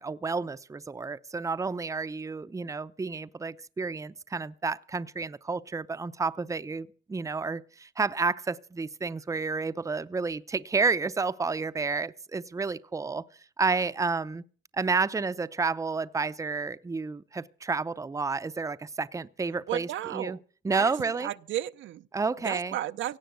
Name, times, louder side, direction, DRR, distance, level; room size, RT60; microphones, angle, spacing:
voice 1, 0.0-13.2 13.6-14.4 14.7-20.4 20.6-21.3 22.1-22.8, right 4 dB, 15° right, 0.6 m, -30 dB
voice 2, 19.7-20.4 20.7-20.9 21.2-22.0 22.4-23.2, right 13 dB, 75° right, 0.6 m, -33 dB
17.0 x 6.8 x 8.1 m
cardioid pair, 90°, 20 cm